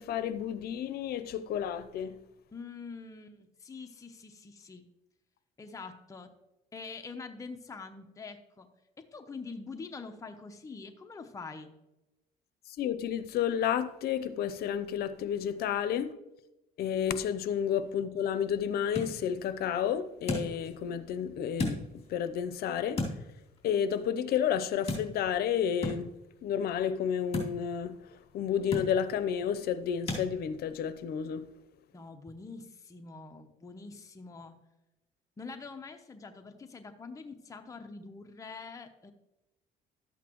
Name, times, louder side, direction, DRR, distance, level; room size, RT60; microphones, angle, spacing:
voice 1, 0.0-2.2 12.7-16.1 16.8-21.8 22.1-23.0 23.6-26.1 26.4-28.0 28.3-31.4, left 8 dB, 65° left, 0.7 m, -31 dB
voice 2, 2.5-4.8 5.6-6.3 6.7-8.7 9.0-11.7 31.9-34.6 35.4-39.1, left 4 dB, 20° left, 0.8 m, -45 dB
sound 1, 17.8-30.3, left 2 dB, 35° left, 2.8 m, -40 dB
12.0 x 8.3 x 3.0 m
cardioid pair, 110°, 17 cm